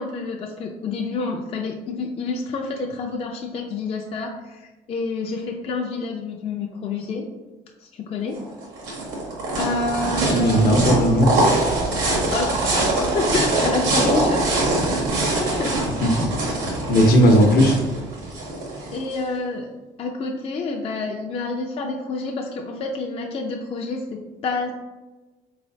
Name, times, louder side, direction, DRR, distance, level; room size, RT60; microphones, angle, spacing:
voice 1, 0.0-7.2 7.8-8.4 9.6-10.7 12.3-14.4 15.6-15.9 18.9-19.7 20.0-24.7, left 3 dB, 35° left, 0 dB, 0.4 m, -28 dB
sound 1, 8.3-19.2, right 2 dB, 90° right, 1.3 m, -23 dB
voice 2, 10.3-11.3 15.7-16.6 16.9-17.7, equal, 65° left, 3 dB, 0.8 m, -17 dB
3.8 x 3.1 x 2.7 m, 1.2 s
cardioid pair, 110°, 17 cm